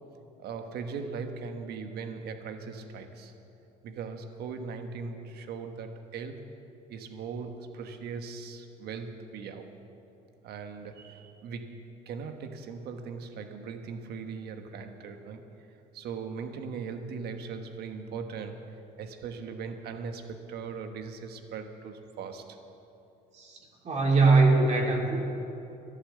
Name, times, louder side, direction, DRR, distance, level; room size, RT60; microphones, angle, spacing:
voice 1, 0.4-3.3 3.8-6.5 6.9-9.7 10.4-22.6, right 5 dB, 70° right, 6 dB, 1.3 m, -39 dB
voice 2, 23.8-25.2, right 3 dB, 40° right, 0 dB, 2.4 m, -21 dB
12.5 x 11.5 x 7.5 m, 2.8 s
cardioid pair, 110°, 17 cm